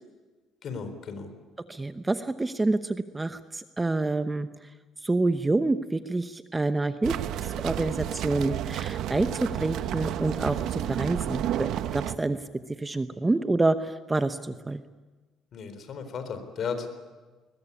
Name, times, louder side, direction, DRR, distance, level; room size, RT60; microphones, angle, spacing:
voice 1, 0.6-1.3 15.5-16.9, left 6 dB, 50° left, 9 dB, 4.0 m, -35 dB
voice 2, 1.7-4.5 5.0-7.1 7.4-12.4 12.8-14.8, right 2 dB, 15° right, 10 dB, 0.8 m, -27 dB
sound 1, 7.0-12.2, right 11 dB, 70° right, 1.0 m, -31 dB
21.5 x 21.5 x 9.9 m, 1.3 s
cardioid pair, 135°, 0 cm